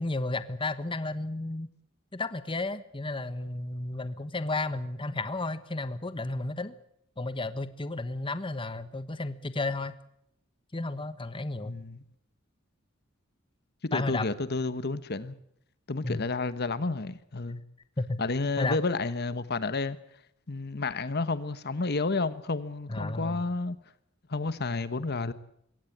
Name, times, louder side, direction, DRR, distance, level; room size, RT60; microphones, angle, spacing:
voice 1, 0.0-1.7 2.1-6.7 7.2-9.9 10.7-11.8 13.9-14.3 16.0-16.2 18.0-18.2 18.6-18.8 22.9-23.4, left 2 dB, 25° left, 1.2 m, -32 dB
voice 2, 11.6-12.0 13.8-15.4 15.9-17.6 18.2-20.0 20.5-23.8 24.3-25.3, left 3 dB, 55° left, 1.2 m, -31 dB
23.0 x 17.5 x 8.6 m
head